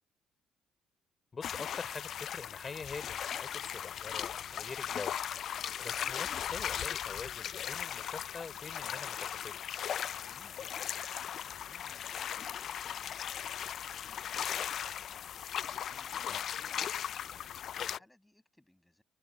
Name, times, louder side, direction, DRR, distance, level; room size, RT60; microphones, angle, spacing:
voice 1, 1.3-5.2 5.5-9.8 16.3-16.4, left 4 dB, 30° left, 4.2 m, -45 dB
sound 1, 1.4-18.0, left 9 dB, 55° left, 0.4 m, -38 dB
sound 2, 3.5-18.1, left 15 dB, 80° left, 4.7 m, -66 dB
voice 2, 10.0-17.3 17.6-19.0, left 1 dB, 5° left, 6.6 m, -65 dB
cardioid pair, 100°, 0 cm